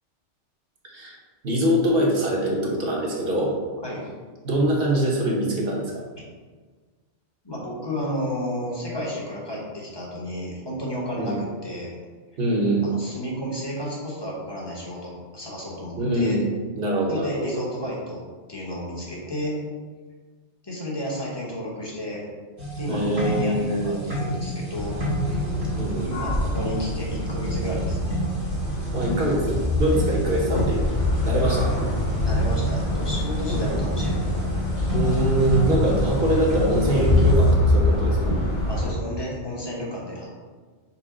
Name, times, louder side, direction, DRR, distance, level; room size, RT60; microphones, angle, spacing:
voice 1, 1.4-3.5 4.4-6.0 11.2-11.4 12.4-12.9 16.0-16.5 16.8-17.5 22.9-24.0 25.8-26.1 28.9-30.8 31.2-31.7 33.5-33.8 34.9-38.4, right 1 dB, 55° right, -2 dB, 1.0 m, -23 dB
voice 2, 7.4-11.9 12.8-16.4 17.1-18.2 18.5-19.6 20.6-22.2 22.8-25.0 25.2-25.4 26.0-28.1 32.2-34.5 38.7-40.3, equal, 25° left, -4 dB, 0.9 m, -32 dB
sound 1, 22.6-37.5, equal, 85° right, 1.8 m, -31 dB
sound 2, 24.8-38.9, left 1 dB, 40° left, 1.2 m, -25 dB
5.9 x 2.1 x 3.7 m, 1.4 s
omnidirectional pair, 1.2 m